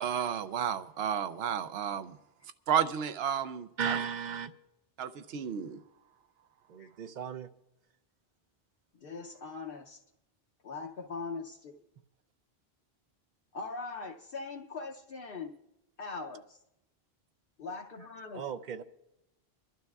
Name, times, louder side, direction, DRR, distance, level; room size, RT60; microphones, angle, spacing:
voice 1, 0.0-2.1 2.7-4.0 5.0-5.8, right 8 dB, 80° right, 0.9 m, -32 dB
voice 2, 3.8-4.5 6.7-7.5 18.3-18.8, right 7 dB, 55° right, 0.6 m, -35 dB
voice 3, 9.0-10.0 10.6-11.7 13.5-15.5 16.0-16.6 17.6-18.4, left 4 dB, 65° left, 0.9 m, -41 dB
28.0 x 12.0 x 2.3 m
omnidirectional pair, 1.0 m